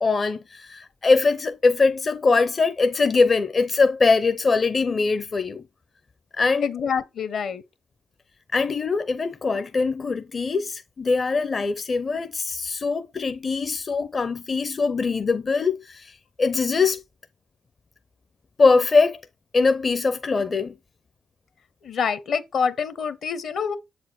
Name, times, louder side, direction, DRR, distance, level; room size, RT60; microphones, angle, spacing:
voice 1, 0.0-5.6 6.3-6.7 8.5-17.0 18.6-19.2 19.5-20.7, left 4 dB, 45° left, 0.6 m, -22 dB
voice 2, 6.6-7.6 21.8-23.8, left 6 dB, 65° left, 0.9 m, -26 dB
7.4 x 4.3 x 4.3 m
hypercardioid pair, 50°, 0 cm